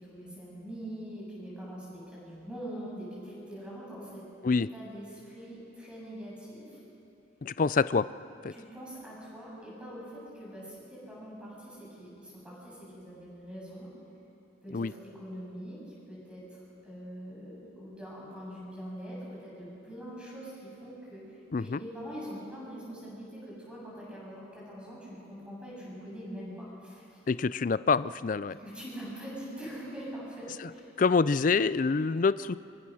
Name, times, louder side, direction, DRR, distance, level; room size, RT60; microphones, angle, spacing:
voice 1, 0.0-4.2 4.7-6.8 8.5-13.9 14.6-27.2 28.5-30.9, equal, 5° right, -5 dB, 7.8 m, -43 dB
voice 2, 7.4-8.1 8.4-8.5 14.7-14.9 21.5-21.8 27.3-28.6 31.0-32.6, left 4 dB, 45° left, 17 dB, 0.4 m, -26 dB
24.5 x 23.5 x 6.4 m, 2.7 s
head